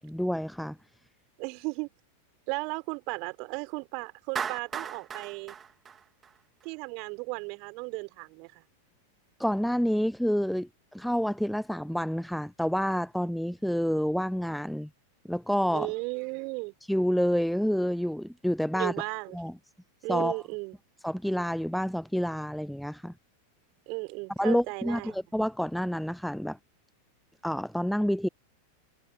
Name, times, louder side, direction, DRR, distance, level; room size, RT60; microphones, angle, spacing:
voice 1, 0.0-0.8 9.4-14.9 15.3-15.9 16.9-18.9 19.3-19.5 20.1-20.4 21.0-23.1 24.4-26.6 27.4-28.3, equal, ahead, 0.3 m, -28 dB
voice 2, 1.4-1.9 2.5-5.6 6.6-8.6 15.7-16.7 18.7-19.4 20.0-20.7 23.9-25.2, right 32 dB, 45° right, 4.1 m, -35 dB
Clapping, 4.4-6.7, right 7 dB, 20° right, 2.9 m, -36 dB
figure-of-eight pair, 90°, 0 cm